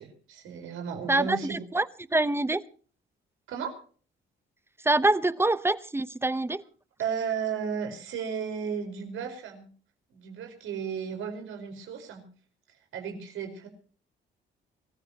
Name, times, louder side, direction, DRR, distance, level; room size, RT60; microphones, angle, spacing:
voice 1, 0.0-1.6 3.5-3.7 7.0-9.7 10.1-12.2 12.9-13.7, right 7 dB, 80° right, 5 dB, 4.7 m, -34 dB
voice 2, 1.1-2.6 4.8-6.6, right 2 dB, 10° right, 16 dB, 0.8 m, -25 dB
24.5 x 15.0 x 2.9 m, 0.43 s
cardioid pair, 90°, 20 cm